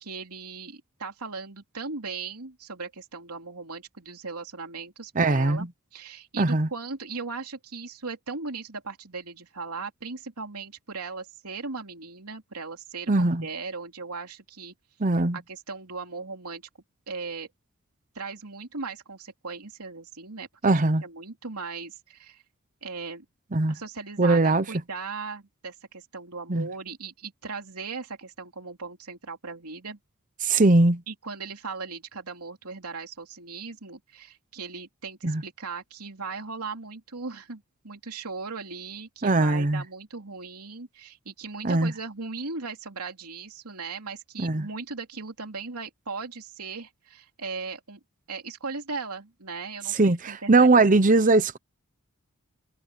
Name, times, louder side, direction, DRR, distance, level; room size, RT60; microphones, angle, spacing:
voice 1, 0.0-14.7 15.3-16.6 17.1-17.5 18.1-22.4 22.8-23.2 23.7-30.0 31.1-48.0 48.3-51.1, right 4 dB, 90° right, 3.1 m, -38 dB
voice 2, 5.2-5.7 6.4-6.7 13.1-13.4 15.0-15.4 20.6-21.0 23.5-23.8 24.2-24.6 26.5-26.7 30.4-31.0 35.2-35.4 39.2-39.8 41.6-41.9 44.4-44.7 49.9-51.6, right 2 dB, 35° right, 0.8 m, -20 dB
head